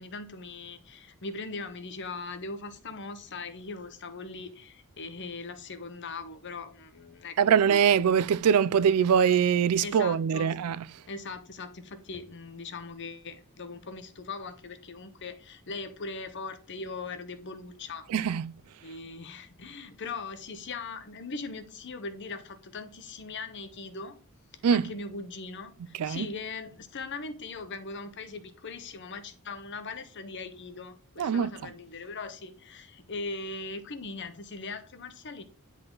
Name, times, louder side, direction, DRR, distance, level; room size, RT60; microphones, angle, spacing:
voice 1, 0.0-7.6 9.8-10.5 11.1-18.3 18.8-24.2 24.7-35.4, left 3 dB, 55° left, 0.9 m, -40 dB
voice 2, 7.4-10.9 18.1-18.5 24.6-24.9 25.9-26.3 31.2-31.7, right 7 dB, 80° right, 0.4 m, -23 dB
10.0 x 3.8 x 3.9 m
head